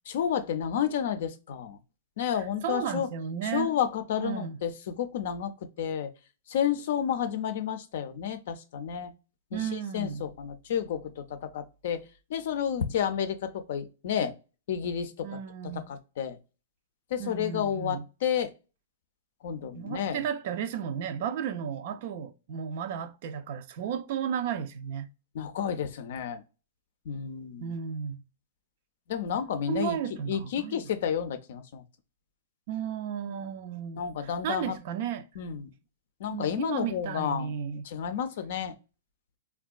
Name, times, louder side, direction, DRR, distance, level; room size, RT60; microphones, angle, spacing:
voice 1, 0.1-1.8 2.2-3.1 3.5-6.1 6.5-9.1 9.5-12.0 12.3-14.3 14.7-15.3 15.6-16.4 17.1-18.5 19.4-20.2 25.3-26.4 27.1-27.7 29.1-30.0 30.3-31.8 34.0-34.8 35.4-35.7 36.2-37.5 37.8-38.8, left 8 dB, 60° left, 0.4 m, -31 dB
voice 2, 2.3-3.7 4.2-4.6 9.5-10.2 15.2-15.9 17.2-18.0 19.7-25.1 27.6-28.2 29.3-30.8 32.7-35.3 36.3-37.9, right 8 dB, 55° right, 0.4 m, -34 dB
3.6 x 2.2 x 2.4 m
hypercardioid pair, 115°, 0 cm